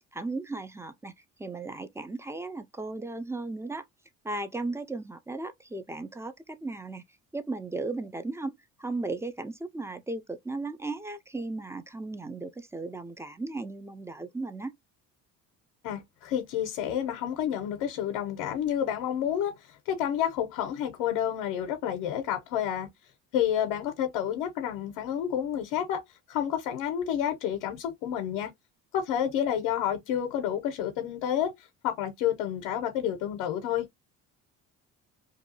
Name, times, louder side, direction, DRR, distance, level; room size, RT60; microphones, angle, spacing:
voice 1, 0.1-1.1 1.4-3.8 4.2-7.0 7.3-8.5 8.8-14.7, right 2 dB, 10° right, 0.4 m, -36 dB
voice 2, 15.8-22.9 23.3-26.0 26.3-28.5 28.9-33.9, left 10 dB, 85° left, 0.7 m, -29 dB
2.6 x 2.3 x 2.6 m
supercardioid pair, 70°, 35 cm